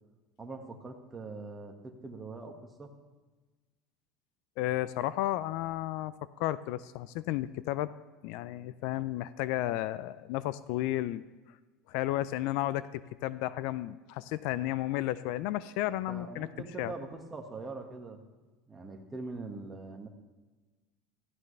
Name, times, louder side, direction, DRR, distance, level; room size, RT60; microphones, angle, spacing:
voice 1, 0.4-2.9 16.1-18.2 18.7-20.1, right 3 dB, 15° right, 2 dB, 1.8 m, -42 dB
voice 2, 4.6-7.9 8.2-11.2 11.9-16.5 16.8-16.9, left 15 dB, 65° left, 16 dB, 0.5 m, -33 dB
16.5 x 15.5 x 3.4 m, 1.3 s
supercardioid pair, 140°, 0 cm